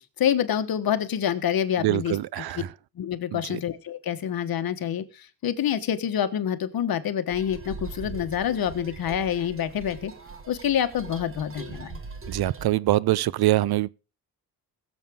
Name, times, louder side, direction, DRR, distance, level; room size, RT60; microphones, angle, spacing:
voice 1, 0.2-2.2 2.9-10.1 10.5-12.0, left 9 dB, 60° left, 1.4 m, -27 dB
voice 2, 1.8-2.7 3.3-3.6 12.3-13.9, right 15 dB, 70° right, 0.6 m, -24 dB
sound 1, 7.3-12.7, right 4 dB, 35° right, 1.5 m, -41 dB
21.5 x 7.4 x 3.6 m
wide cardioid pair, 150°, 39 cm